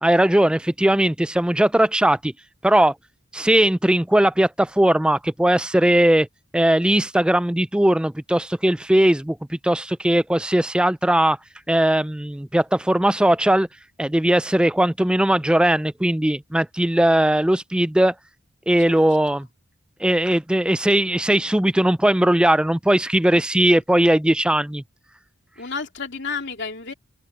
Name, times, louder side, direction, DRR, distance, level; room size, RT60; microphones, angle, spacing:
voice 1, 0.0-2.3 2.6-2.9 3.3-6.3 6.5-11.4 11.7-13.7 14.0-18.1 18.7-19.5 20.0-24.8, right 1 dB, 5° right, 0.3 m, -19 dB
voice 2, 25.6-26.9, left 5 dB, 55° left, 3.2 m, -31 dB
open air
head